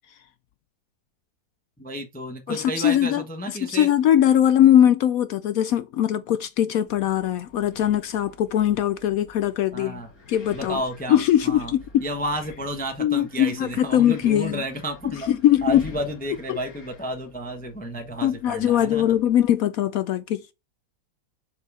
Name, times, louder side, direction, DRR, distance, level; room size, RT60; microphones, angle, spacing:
voice 1, 1.8-3.9 9.7-10.1 10.5-11.7 12.0-15.3 15.6-19.1, equal, 5° left, 0.8 m, -31 dB
voice 2, 2.5-10.0 10.3-10.8 11.1-12.0 13.0-14.6 15.0-15.8 16.5-16.6 18.2-20.5, left 11 dB, 70° left, 0.8 m, -21 dB
Wind, 6.9-19.5, left 3 dB, 50° left, 2.2 m, -48 dB
6.7 x 4.8 x 4.8 m
omnidirectional pair, 1.9 m